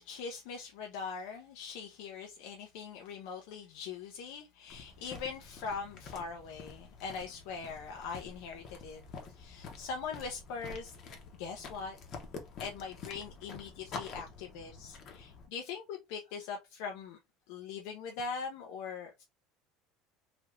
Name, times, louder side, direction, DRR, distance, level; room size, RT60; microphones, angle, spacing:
voice 1, 0.0-9.0 9.3-10.9 11.4-12.0 12.6-17.2 17.5-19.2, left 5 dB, 75° left, 0.6 m, -41 dB
sound 1, 4.7-15.5, left 4 dB, 45° left, 0.8 m, -48 dB
3.3 x 2.9 x 2.5 m
cardioid pair, 150°, 0 cm